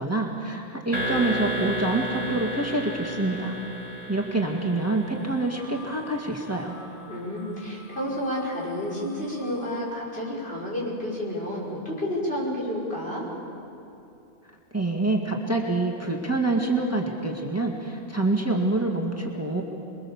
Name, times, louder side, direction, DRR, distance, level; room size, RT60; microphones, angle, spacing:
voice 1, 0.0-3.6 4.1-6.8 14.7-19.6, right 2 dB, 15° right, 0 dB, 2.0 m, -26 dB
sound 1, 0.9-5.8, equal, 35° right, 2.6 m, -32 dB
sound 2, 5.1-11.9, left 1 dB, 10° left, 5.9 m, -49 dB
voice 2, 7.1-13.3, left 1 dB, 70° left, -5 dB, 6.0 m, -30 dB
27.5 x 22.0 x 7.2 m, 2.7 s
omnidirectional pair, 1.1 m